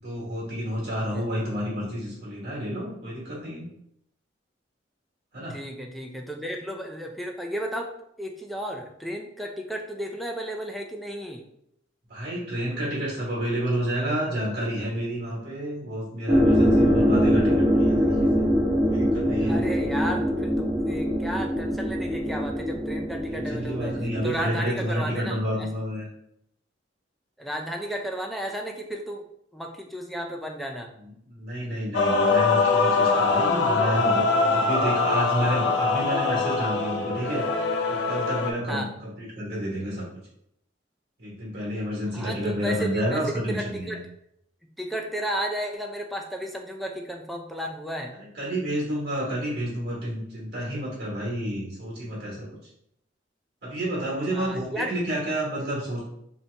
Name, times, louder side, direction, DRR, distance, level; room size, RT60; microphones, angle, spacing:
voice 1, 0.0-3.7 5.3-5.6 12.1-18.5 18.9-19.6 23.3-26.1 30.9-37.4 37.9-40.0 41.2-44.0 48.2-52.6 53.6-56.0, equal, 60° right, -5 dB, 1.2 m, -30 dB
voice 2, 5.5-7.9 8.2-11.4 19.4-23.9 24.2-25.7 27.4-29.2 29.5-30.9 38.7-38.9 42.1-44.1 44.8-48.1 54.3-54.9, right 1 dB, ahead, 1 dB, 0.3 m, -33 dB
sound 1, 16.3-24.4, equal, 25° right, 0.8 m, -23 dB
Male singing / Female singing / Musical instrument, 31.9-38.5, left 4 dB, 75° left, 0.5 m, -23 dB
2.8 x 2.8 x 3.2 m, 0.75 s
head